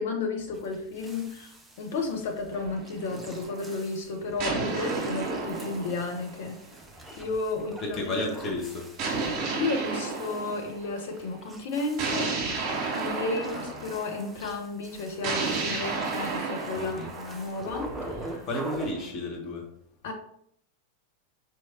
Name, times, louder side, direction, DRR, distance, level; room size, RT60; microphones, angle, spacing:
voice 1, 0.0-6.6 7.2-8.3 9.5-12.4 12.8-18.4 20.0-20.1, left 3 dB, 55° left, 0.9 m, -33 dB
sound 1, 0.5-18.9, right 1 dB, 5° right, 0.7 m, -45 dB
sound 2, 2.5-3.6 4.4-7.0 9.0-11.1 12.0-14.3 15.2-19.0, right 4 dB, 35° right, 1.6 m, -33 dB
voice 2, 7.8-8.9 12.4-12.5 13.5-13.8 16.7-17.1 18.5-19.7, left 1 dB, 30° left, 1.1 m, -32 dB
5.0 x 3.1 x 2.9 m
figure-of-eight pair, 90°, 0 cm